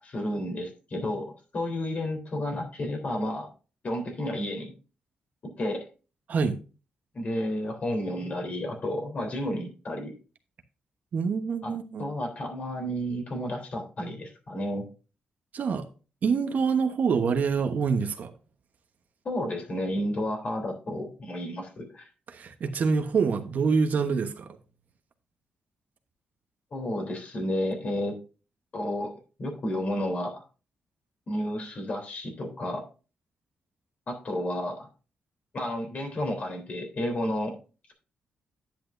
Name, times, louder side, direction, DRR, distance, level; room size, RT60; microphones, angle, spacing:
voice 1, 0.0-3.5 3.8-4.7 5.4-5.9 7.1-10.1 11.6-11.7 12.0-14.9 19.3-22.1 26.7-28.2 28.7-30.4 31.3-32.9 34.1-34.9 35.5-37.5, left 1 dB, 45° left, 3.5 m, -31 dB
voice 2, 11.1-12.1 15.5-15.8 16.2-18.3 22.3-24.6, right 5 dB, 55° right, 1.1 m, -26 dB
10.0 x 8.6 x 2.6 m
cardioid pair, 115°, 3 cm